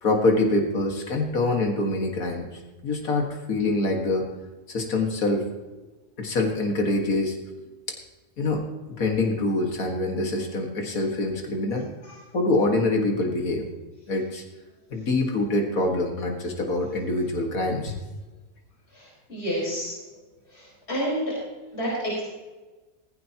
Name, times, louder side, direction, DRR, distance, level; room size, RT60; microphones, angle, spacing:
voice 1, 0.0-2.5 2.8-4.3 4.7-5.5 6.2-7.4 8.4-8.6 9.0-11.9 12.3-13.7 14.1-14.4 14.9-18.0, left 2 dB, 85° left, 2 dB, 2.3 m, -25 dB
voice 2, 18.9-19.9 20.5-21.3 21.7-22.2, equal, 50° left, -7 dB, 5.2 m, -29 dB
17.0 x 15.5 x 3.0 m, 1.2 s
omnidirectional pair, 1.4 m